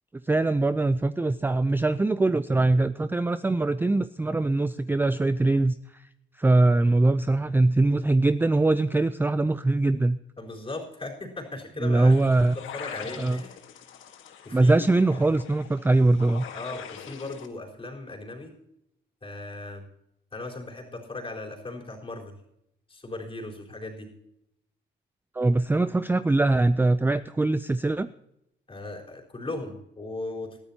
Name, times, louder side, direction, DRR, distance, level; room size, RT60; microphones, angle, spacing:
voice 1, 0.3-6.0 6.4-10.2 11.8-12.6 13.2-13.4 14.5-16.4 25.3-28.1, right 2 dB, 10° right, 13 dB, 0.4 m, -22 dB
voice 2, 10.4-12.1 12.5-13.6 14.4-15.2 16.5-18.5 19.2-19.8 20.3-22.3 22.9-24.1 28.7-30.6, left 2 dB, 25° left, 0 dB, 4.3 m, -37 dB
sound 1, 12.1-17.5, left 8 dB, 80° left, 1.5 m, -43 dB
21.0 x 13.0 x 2.8 m, 0.80 s
cardioid pair, 90°, 20 cm